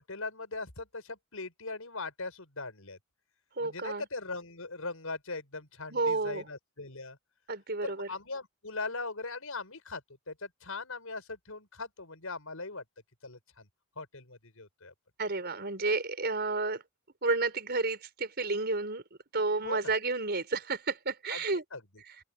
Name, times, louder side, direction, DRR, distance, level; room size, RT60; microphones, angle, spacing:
voice 1, 0.0-3.0 3.6-7.2 7.8-12.8 13.2-13.7 14.0-14.9 19.6-19.9 21.3-21.4 21.7-21.8, left 3 dB, 80° left, 5.8 m, -40 dB
voice 2, 3.6-4.1 5.9-6.4 7.5-8.1 15.2-16.8 17.2-19.0 19.3-21.6, right 3 dB, 50° right, 5.0 m, -31 dB
open air
head